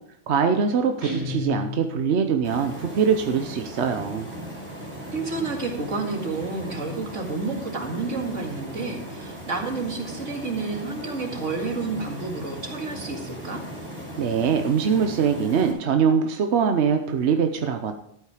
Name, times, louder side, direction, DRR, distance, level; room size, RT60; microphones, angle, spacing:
voice 1, 0.3-4.3 14.2-17.9, right 6 dB, 65° right, 6 dB, 1.1 m, -22 dB
Guitar, 1.0-2.3, left 2 dB, 30° right, 3.1 m, -32 dB
sound 1, 2.4-15.7, equal, 45° right, 5.0 m, -37 dB
voice 2, 5.1-13.6, right 3 dB, 85° right, 2 dB, 2.4 m, -30 dB
13.0 x 8.6 x 4.9 m, 0.72 s
omnidirectional pair, 1.3 m